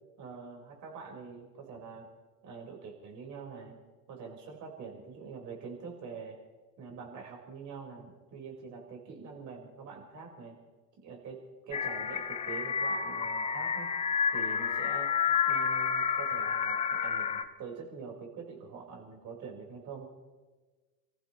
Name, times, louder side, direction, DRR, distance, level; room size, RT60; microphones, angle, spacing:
voice 1, 0.2-2.1 2.4-3.8 4.1-6.4 6.8-10.6 11.0-11.4 11.7-13.9 14.3-15.1 15.5-20.1, right 5 dB, 35° right, 0 dB, 5.1 m, -45 dB
sound 1, 11.7-17.4, left 7 dB, 15° left, 0.6 m, -30 dB
29.5 x 15.0 x 3.2 m, 1.3 s
figure-of-eight pair, 80°, 50 cm